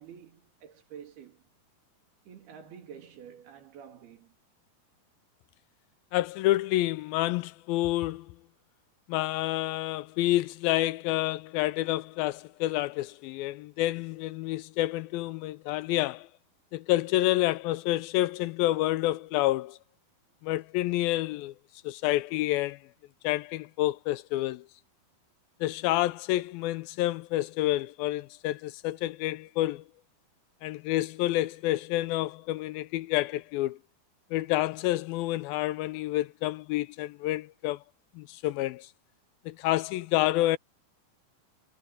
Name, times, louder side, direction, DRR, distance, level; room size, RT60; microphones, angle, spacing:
voice 1, 0.0-1.4 2.3-4.3, right 8 dB, 80° right, 4.6 m, -49 dB
voice 2, 6.1-8.3 9.1-16.3 16.7-19.8 20.4-21.5 21.8-22.8 23.2-24.6 25.6-29.8 30.6-33.8 34.3-37.8 38.2-38.9 39.5-40.6, left 16 dB, 80° left, 2.3 m, -28 dB
omnidirectional pair, 4.4 m